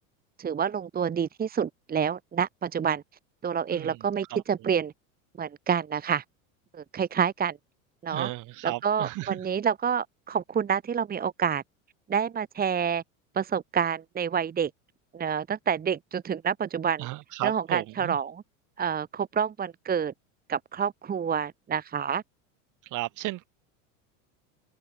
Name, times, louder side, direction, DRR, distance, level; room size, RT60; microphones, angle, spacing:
voice 1, 0.4-3.0 3.4-4.9 5.4-6.2 6.7-7.6 8.0-8.3 8.6-11.6 12.1-13.0 13.3-14.7 15.1-17.1 17.4-18.4 18.8-20.1 20.5-22.2, right 7 dB, 25° right, 1.7 m, -28 dB
voice 2, 8.1-9.4 17.0-18.2 22.9-23.5, right 18 dB, 50° right, 3.9 m, -34 dB
open air
supercardioid pair, 125°, 39 cm